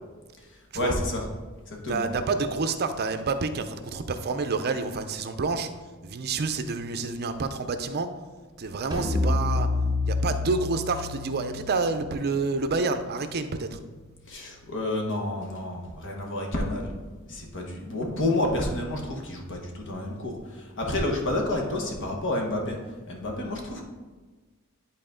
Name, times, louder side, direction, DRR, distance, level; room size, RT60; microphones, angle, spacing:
voice 1, 0.7-1.3 1.7-2.1 14.3-16.9 17.3-22.8 23.1-23.8, left 1 dB, 60° left, 1 dB, 1.3 m, -29 dB
voice 2, 1.9-5.7 6.0-8.1 8.6-9.7 10.1-13.8, right 4 dB, 45° right, 9 dB, 0.6 m, -28 dB
sound 1, 8.9-14.3, left 3 dB, 20° right, 1.0 m, -30 dB
10.0 x 4.2 x 3.8 m, 1.3 s
head